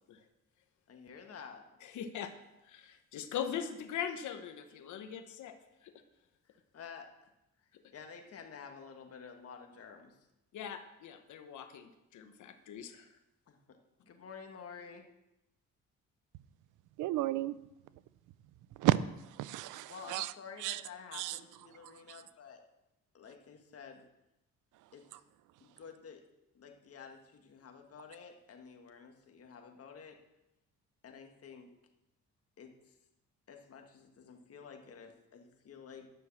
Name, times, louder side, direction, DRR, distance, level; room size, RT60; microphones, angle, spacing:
voice 1, 0.9-1.7 6.5-7.3 7.9-10.2 13.5-15.1 19.9-22.6 23.1-24.1 24.9-25.2 25.6-26.2 26.6-30.2 31.0-31.7 32.6-32.9 33.5-36.1, left 6 dB, 50° left, 4 dB, 1.7 m, -51 dB
voice 2, 1.8-2.3 2.7-5.5 10.5-13.1, left 8 dB, 75° left, 7 dB, 1.1 m, -41 dB
voice 3, 17.0-17.6 18.8-19.0 19.4-20.3 20.6-20.8 21.2-21.3, right 16 dB, 90° right, 17 dB, 0.5 m, -31 dB
10.5 x 6.4 x 7.2 m, 0.92 s
cardioid pair, 90°, 30 cm